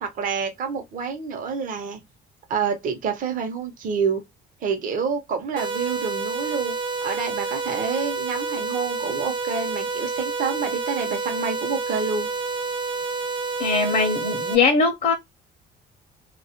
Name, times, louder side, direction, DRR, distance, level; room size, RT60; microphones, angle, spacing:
voice 1, 0.0-2.0 2.5-4.2 4.6-6.8 7.0-12.3, right 6 dB, 55° right, 0.7 m, -28 dB
sound 1, 5.6-14.6, right 4 dB, 30° right, 0.4 m, -29 dB
voice 2, 13.6-15.1, left 4 dB, 50° left, 0.6 m, -20 dB
2.3 x 2.0 x 2.7 m
cardioid pair, 110°, 17 cm